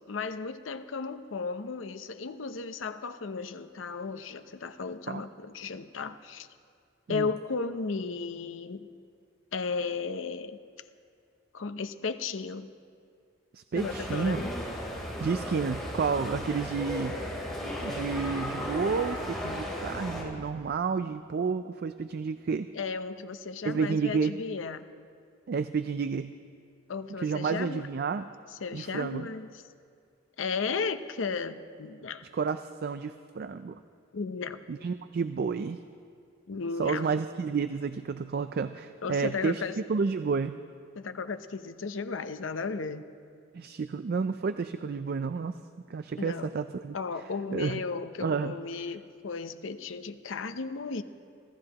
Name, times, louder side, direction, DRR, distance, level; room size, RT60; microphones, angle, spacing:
voice 1, 0.0-6.5 7.1-8.9 9.5-10.6 11.5-12.7 13.7-14.5 22.7-24.9 26.9-27.9 28.6-29.6 30.4-32.2 34.1-34.6 36.5-37.1 39.0-39.7 41.0-43.0 46.2-46.5 46.9-51.0, left 4 dB, 85° left, 10 dB, 0.7 m, -35 dB
voice 2, 13.5-14.4 15.2-17.2 17.8-22.7 23.6-24.3 25.5-26.3 27.2-28.3 28.7-29.3 32.3-33.8 34.7-35.8 36.8-39.6 39.9-40.6 43.5-45.6 45.9-47.0 47.5-47.8 48.2-48.5, right 5 dB, 55° right, 11 dB, 0.4 m, -30 dB
sound 1, 13.8-20.2, equal, ahead, 3.5 m, -35 dB
25.5 x 15.5 x 2.9 m, 2.3 s
head